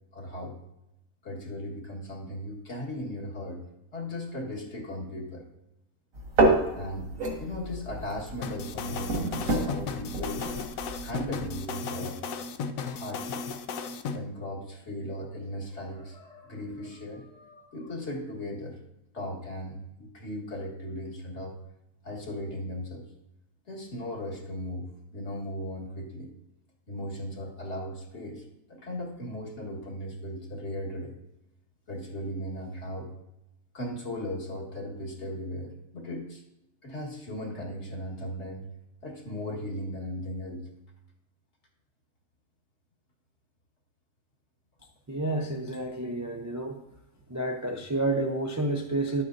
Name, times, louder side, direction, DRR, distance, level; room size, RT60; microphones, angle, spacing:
voice 1, 0.1-0.6 1.2-3.6 3.9-5.4 6.8-7.1 7.4-9.2 9.4-10.5 11.0-12.2 12.9-13.5 14.1-18.8 19.1-21.5 22.0-23.1 23.7-26.3 26.9-28.4 28.7-31.2 31.9-33.1 33.7-36.4 36.8-38.7 39.0-40.7, left 1 dB, 55° left, -2 dB, 1.9 m, -37 dB
sound 1, 6.1-11.6, right 2 dB, 75° right, 2.0 m, -29 dB
sound 2, 8.4-14.2, left 5 dB, 80° left, 1.0 m, -35 dB
voice 2, 45.1-46.8 47.3-49.2, right 2 dB, 25° right, 1 dB, 0.4 m, -30 dB
11.5 x 8.5 x 2.6 m, 0.88 s
omnidirectional pair, 1.4 m